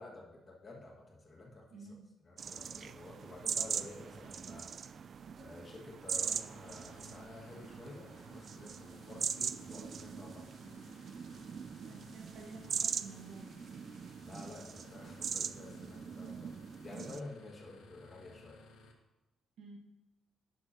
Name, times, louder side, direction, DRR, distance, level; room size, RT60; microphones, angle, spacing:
voice 1, 0.0-4.8 5.4-10.5 14.2-18.6, left 2 dB, 35° left, -2 dB, 1.9 m, -51 dB
voice 2, 1.7-2.1 11.8-13.6 15.7-15.8 19.6-19.8, right 3 dB, 70° right, 2 dB, 1.4 m, -51 dB
sound 1, 2.4-17.2, right 6 dB, 50° right, 0.3 m, -41 dB
sound 2, 6.7-18.9, left 2 dB, 85° left, 1.1 m, -58 dB
10.5 x 6.7 x 2.9 m, 1.1 s
cardioid pair, 90°, 0 cm